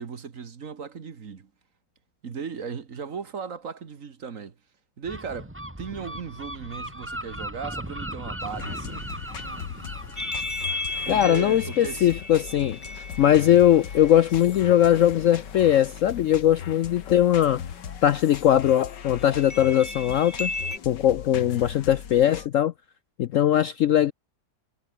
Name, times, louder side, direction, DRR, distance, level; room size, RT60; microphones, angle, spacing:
voice 1, 0.0-1.5 2.2-4.6 5.0-9.1 11.1-12.1, right 6 dB, 50° right, 1.8 m, -36 dB
Gull seagull, 5.0-12.5, right 1 dB, 5° right, 2.3 m, -38 dB
sound 1, 8.4-22.5, left 8 dB, 85° left, 2.2 m, -39 dB
sound 2, 10.2-14.7 19.4-20.8, left 2 dB, 15° left, 0.6 m, -34 dB
voice 2, 11.1-17.6 18.0-20.5 20.9-22.7 23.2-24.1, left 11 dB, 65° left, 0.8 m, -20 dB
omnidirectional pair, 1.8 m